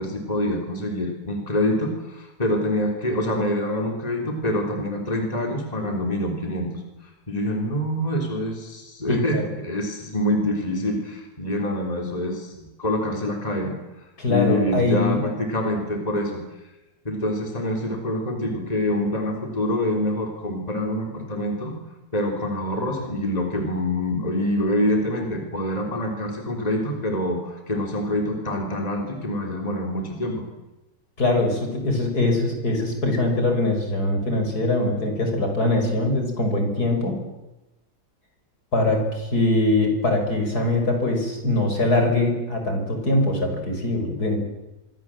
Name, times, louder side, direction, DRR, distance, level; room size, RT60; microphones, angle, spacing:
voice 1, 0.0-16.4 17.1-21.7 22.1-30.4, left 1 dB, 20° left, 2 dB, 3.5 m, -26 dB
voice 2, 9.1-9.5 14.2-15.2 31.2-37.2 38.7-44.4, left 2 dB, 55° left, 4 dB, 5.9 m, -22 dB
25.5 x 24.5 x 7.7 m, 1.0 s
omnidirectional pair, 2.0 m